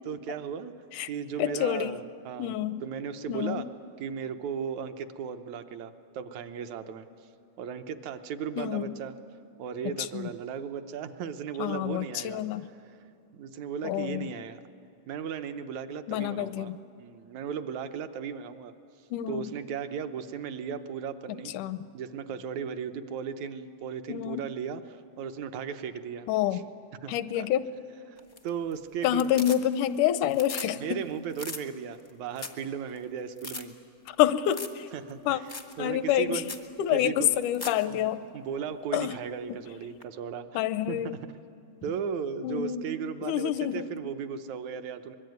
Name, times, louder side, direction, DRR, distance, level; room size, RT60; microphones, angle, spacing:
voice 1, 0.1-0.7 1.0-2.6 2.8-3.7 4.0-7.1 7.6-9.2 9.6-12.4 12.7-13.0 13.3-14.6 15.1-16.7 17.0-18.7 19.3-21.5 21.9-26.6 27.0-27.5 28.1-29.5 30.8-33.7 34.9-36.5 36.9-37.3 37.9-41.4 41.8-45.2, right 7 dB, 70° right, 9 dB, 2.2 m, -36 dB
voice 2, 1.4-1.9 2.4-2.8 3.3-3.7 8.6-8.9 10.0-10.3 11.6-12.6 13.8-14.3 16.1-16.8 19.1-19.5 21.5-21.8 24.1-24.5 26.3-26.6 27.1-27.7 29.0-31.0 34.2-34.9 35.3-35.4 35.8-36.4 36.8-38.2 38.9-39.2 40.5-41.2 42.4-42.9 43.2-43.9, left 11 dB, 85° left, 13 dB, 2.2 m, -27 dB
sound 1, 28.2-28.7 29.0-30.0 30.2-30.7 31.0-31.1 31.3-31.6 32.1-32.2 32.4-32.6 33.0-33.1 33.4-33.6 34.5-34.8 35.1-35.2 35.5-35.7 36.1-36.2 36.4-36.7 37.3-37.8 40.0-40.1, left 3 dB, 45° left, 0.6 m, -39 dB
24.0 x 21.5 x 9.4 m, 2.6 s
omnidirectional pair, 3.5 m